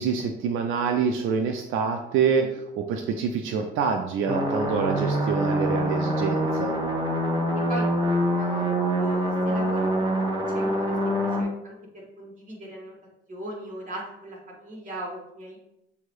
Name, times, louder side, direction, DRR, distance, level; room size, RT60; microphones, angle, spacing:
voice 1, 0.0-6.7, right 6 dB, 90° right, 5 dB, 0.6 m, -26 dB
sound 1, 4.3-11.4, equal, 20° right, 1.6 m, -25 dB
voice 2, 7.7-10.2 10.5-12.9 13.3-15.6, right 1 dB, 40° right, -2 dB, 2.4 m, -39 dB
7.0 x 2.8 x 4.8 m, 0.80 s
cardioid pair, 90°, 20 cm